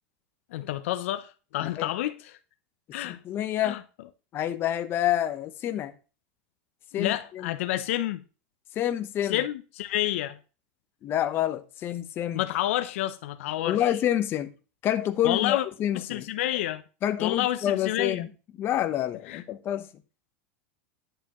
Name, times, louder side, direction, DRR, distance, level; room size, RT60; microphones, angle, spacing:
voice 1, 0.5-2.4 2.9-3.2 3.6-3.8 6.9-8.2 9.3-10.4 12.3-13.8 15.2-15.6 15.9-16.8 17.2-18.3 19.3-19.4, left 14 dB, 75° left, 0.6 m, -29 dB
voice 2, 3.0-3.8 4.3-5.9 6.9-7.5 8.7-9.4 11.0-12.4 13.6-14.5 14.8-16.2 17.0-18.3 18.6-19.9, left 11 dB, 35° left, 0.9 m, -28 dB
11.0 x 6.8 x 3.0 m
supercardioid pair, 140°, 7 cm